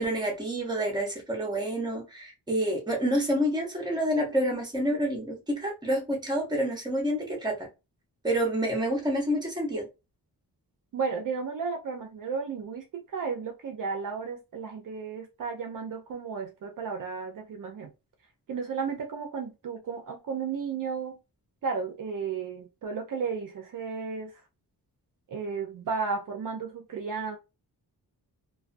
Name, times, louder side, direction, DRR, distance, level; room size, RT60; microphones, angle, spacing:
voice 1, 0.0-7.7 8.2-9.9, equal, 10° right, 0.7 m, -28 dB
voice 2, 10.9-17.9 18.5-21.2 21.6-24.3 25.3-27.4, right 5 dB, 55° right, 0.5 m, -33 dB
2.2 x 2.2 x 2.5 m
wide cardioid pair, 175°, 39 cm